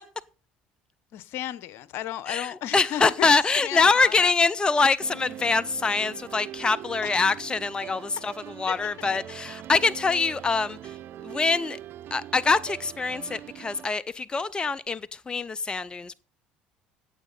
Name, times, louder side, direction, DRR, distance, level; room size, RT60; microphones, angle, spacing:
voice 1, 1.1-3.3 3.6-4.3 8.7-8.8, left 12 dB, 60° left, 0.9 m, -34 dB
voice 2, 2.3-11.0 11.2-11.8 12.1-16.1, left 4 dB, 20° left, 0.5 m, -24 dB
sound 1, 5.0-13.9, right 12 dB, 55° right, 0.7 m, -42 dB
16.5 x 7.4 x 3.9 m
hypercardioid pair, 70°, 5 cm